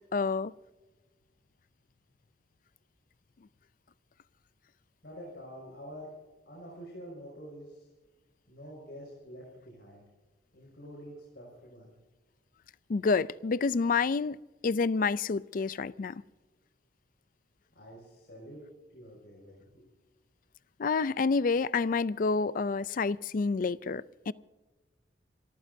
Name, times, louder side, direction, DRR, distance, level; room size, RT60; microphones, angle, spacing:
voice 1, 0.1-0.5 12.9-14.4 14.6-16.2 20.8-24.3, left 4 dB, 50° left, 0.4 m, -28 dB
voice 2, 5.0-6.1 6.5-7.9 8.5-10.0 10.5-11.9 17.7-18.6 18.9-19.9, equal, 65° left, 5.9 m, -47 dB
27.0 x 14.5 x 2.7 m
head